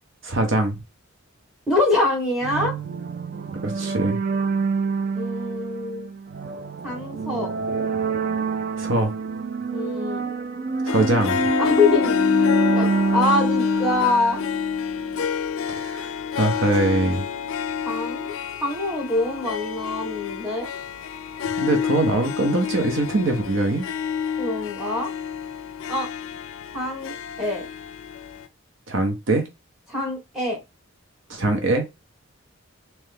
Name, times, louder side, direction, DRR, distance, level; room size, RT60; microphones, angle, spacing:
voice 1, 0.2-0.8 3.6-4.2 8.8-9.1 10.8-11.4 15.7-17.3 21.6-23.8 28.9-29.5 31.3-31.9, right 2 dB, 60° right, 0.9 m, -22 dB
voice 2, 1.7-2.7 5.1-6.1 6.8-7.5 9.7-10.3 11.6-12.1 12.7-14.4 17.8-18.3 18.6-20.7 24.4-25.1 25.9-26.1 26.7-27.7 29.9-30.6, left 2 dB, ahead, 1.6 m, -24 dB
sound 1, 2.4-14.9, right 4 dB, 40° right, 0.4 m, -27 dB
Harp, 10.9-28.5, left 7 dB, 70° left, 0.4 m, -27 dB
3.3 x 3.1 x 3.3 m
head